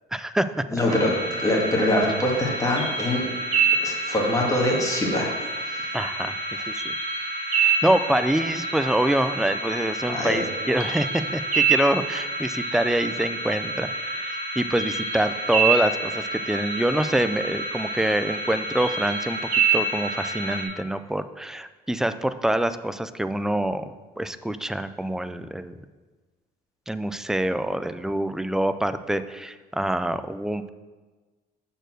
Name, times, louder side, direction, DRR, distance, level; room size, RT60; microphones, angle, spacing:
voice 1, 0.1-1.0 5.9-6.4 6.7-6.9 7.5-19.4 19.7-23.9 24.2-25.7 26.9-30.7, right 1 dB, 5° right, 11 dB, 0.3 m, -25 dB
voice 2, 0.7-3.2 3.8-5.3 5.7-5.8 10.1-10.4, left 1 dB, 20° left, -2 dB, 1.9 m, -24 dB
sound 1, 0.9-20.6, right 4 dB, 45° right, 1.8 m, -27 dB
6.5 x 4.5 x 6.2 m, 1.3 s
cardioid pair, 110°, 17 cm